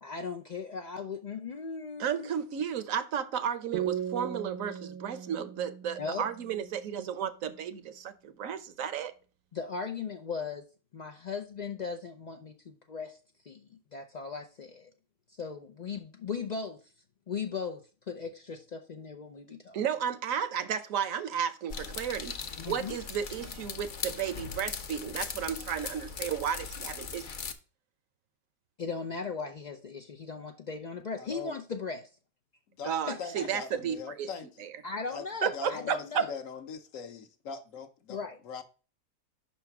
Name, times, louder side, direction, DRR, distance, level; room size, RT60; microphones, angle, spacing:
voice 1, 0.0-2.3 6.0-6.3 9.5-10.6 10.9-13.2 13.4-14.9 15.3-16.8 17.3-17.8 18.1-19.8 22.6-23.0 28.8-32.1 33.1-33.5 34.8-36.3 38.1-38.4, left 5 dB, 85° left, 0.3 m, -38 dB
voice 2, 2.0-9.1 19.7-22.4 22.7-27.3 32.8-34.3 34.6-34.7 35.4-36.2, right 8 dB, 70° right, 1.0 m, -33 dB
sound 1, 3.7-7.2, right 10 dB, 85° right, 1.3 m, -38 dB
sound 2, 21.7-27.5, left 5 dB, 50° left, 0.6 m, -39 dB
voice 3, 31.2-31.6 32.7-32.9 33.2-34.7 35.1-35.2 35.5-38.2 38.4-38.6, left 6 dB, 65° left, 1.1 m, -41 dB
5.6 x 4.2 x 5.8 m
omnidirectional pair, 1.5 m